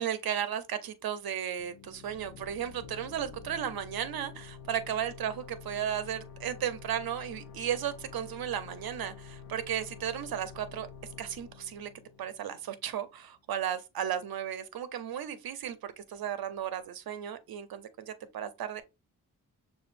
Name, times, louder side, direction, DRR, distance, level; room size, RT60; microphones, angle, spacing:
voice 1, 0.0-10.9 11.2-11.9 12.2-18.8, right 9 dB, 70° right, 0.7 m, -35 dB
sound 1, 1.6-13.0, left 7 dB, 85° left, 0.6 m, -48 dB
6.6 x 2.5 x 2.5 m
cardioid pair, 50°, 37 cm